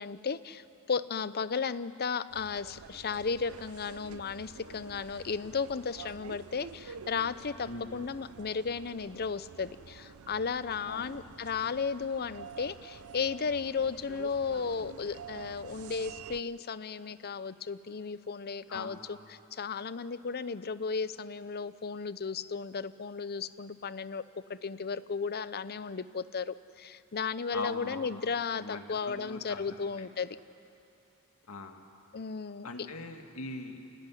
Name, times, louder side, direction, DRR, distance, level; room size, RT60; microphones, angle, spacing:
voice 1, 0.0-24.2 24.5-30.4 32.1-32.9, left 5 dB, 45° left, 15 dB, 0.7 m, -35 dB
sound 1, 2.3-16.4, right 6 dB, 80° right, 0.6 m, -49 dB
voice 2, 10.9-11.3 18.7-19.0 27.5-28.2 28.5-30.1 31.5-31.8 32.6-33.8, left 2 dB, 75° left, 4 dB, 2.2 m, -41 dB
29.0 x 17.5 x 10.0 m, 2.8 s
head